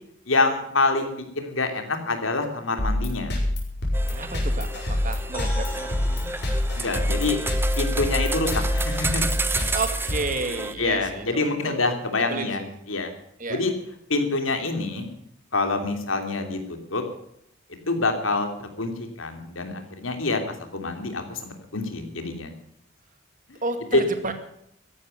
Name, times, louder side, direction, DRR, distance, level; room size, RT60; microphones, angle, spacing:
voice 1, 0.3-3.3 6.8-7.4 7.8-9.3 10.8-12.6 12.9-13.1 13.5-13.7 14.1-15.1 15.5-17.0 17.9-18.9 19.2-20.4 20.7-22.5 23.9-24.0, left 3 dB, 80° left, 6 dB, 3.0 m, -26 dB
sound 1, 2.8-11.0, left 1 dB, 60° left, 5.2 m, -27 dB
sound 2, 3.9-10.7, right 3 dB, 10° right, 1.0 m, -31 dB
voice 2, 4.1-6.3 6.9-7.0 9.7-12.7 13.4-13.6 23.6-24.3, right 3 dB, 40° right, 7 dB, 2.2 m, -32 dB
sound 3, 5.3-9.3, left 1 dB, 10° left, 4.3 m, -43 dB
14.0 x 11.5 x 8.0 m, 0.73 s
head